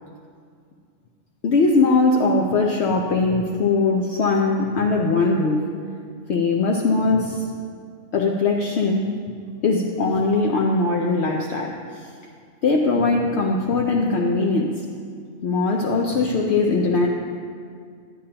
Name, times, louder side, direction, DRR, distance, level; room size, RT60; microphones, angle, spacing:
voice 1, 1.4-5.6 6.3-7.4 8.1-9.1 9.6-12.1 12.6-14.8 15.4-17.1, left 3 dB, 60° left, 0 dB, 0.9 m, -20 dB
11.0 x 10.0 x 2.9 m, 2.2 s
omnidirectional pair, 1.4 m